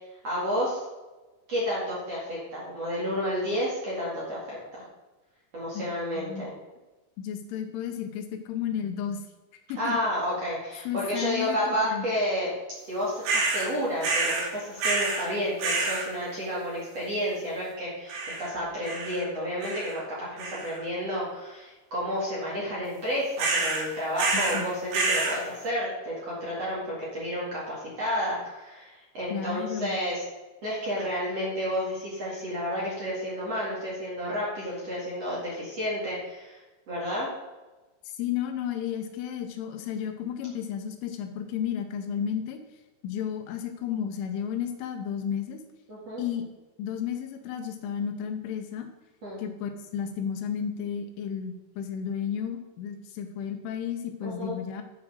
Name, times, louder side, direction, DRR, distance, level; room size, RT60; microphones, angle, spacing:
voice 1, 0.2-0.8 1.5-4.8 5.5-6.5 9.8-12.5 12.8-30.2 30.6-36.6 36.9-37.3 45.9-46.2 49.2-49.4 54.2-54.6, equal, 45° right, -6 dB, 2.3 m, -31 dB
voice 2, 7.2-9.2 9.7-10.0 10.9-12.1 24.5-24.7 29.3-30.0 38.1-42.6 43.0-45.6 46.2-46.4 46.8-48.9 49.4-54.8, left 8 dB, 80° left, 6 dB, 3.2 m, -32 dB
sound 1, 13.2-13.7 14.0-14.5 14.8-15.3 15.6-16.1 18.1-18.5 18.8-19.2 19.6-20.0 20.4-20.8 23.4-23.8 24.2-24.6 24.9-25.4, right 3 dB, 60° right, 2.8 m, -27 dB
9.6 x 5.6 x 6.4 m, 1.2 s
omnidirectional pair, 5.7 m